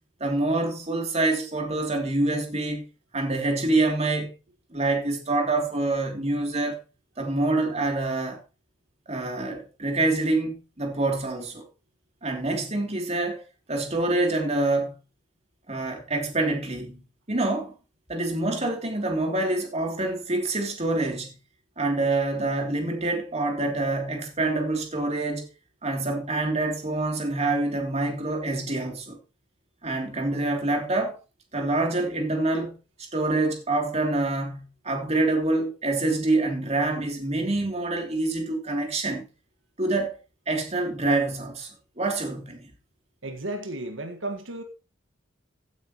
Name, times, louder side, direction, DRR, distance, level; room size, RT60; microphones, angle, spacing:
voice 1, 0.2-2.9 3.1-4.3 4.7-6.8 7.2-8.4 9.1-11.6 12.2-13.4 13.7-15.0 15.7-17.0 17.3-17.7 18.1-21.3 21.8-25.5 25.8-29.2 29.8-31.2 31.5-39.2 39.8-40.2 40.5-41.7 42.0-42.7, right 2 dB, 35° right, 3.1 m, -26 dB
voice 2, 43.2-44.6, right 1 dB, 85° right, 1.8 m, -33 dB
15.5 x 9.2 x 3.1 m
head